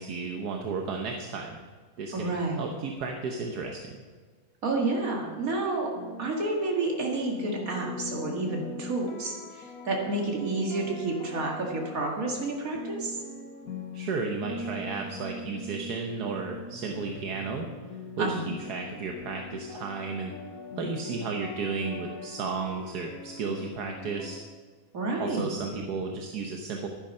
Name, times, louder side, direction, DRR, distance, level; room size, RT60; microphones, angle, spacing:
voice 1, 0.0-1.6 2.0-3.9 13.9-17.7 18.2-18.3 18.7-20.3 20.8-24.4 25.2-26.9, right 4 dB, 80° right, 2 dB, 1.5 m, -33 dB
voice 2, 2.1-2.7 4.6-5.9 6.2-13.2 18.2-18.5 24.9-25.5, right 2 dB, 60° right, 0 dB, 2.5 m, -30 dB
sound 1, 5.9-24.4, left 2 dB, 65° left, 1.7 m, -42 dB
12.0 x 9.9 x 5.5 m, 1.4 s
omnidirectional pair, 1.7 m